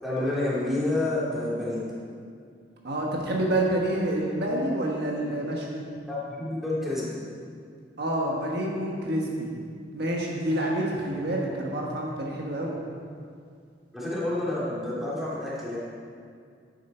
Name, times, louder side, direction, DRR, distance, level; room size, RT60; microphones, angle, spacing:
voice 1, 0.0-1.8 6.1-7.1 13.9-15.8, left 1 dB, ahead, -9 dB, 3.1 m, -29 dB
voice 2, 2.8-5.8 8.0-9.5 9.9-12.8, right 1 dB, 60° right, -2 dB, 1.4 m, -28 dB
11.0 x 9.4 x 4.5 m, 2.2 s
head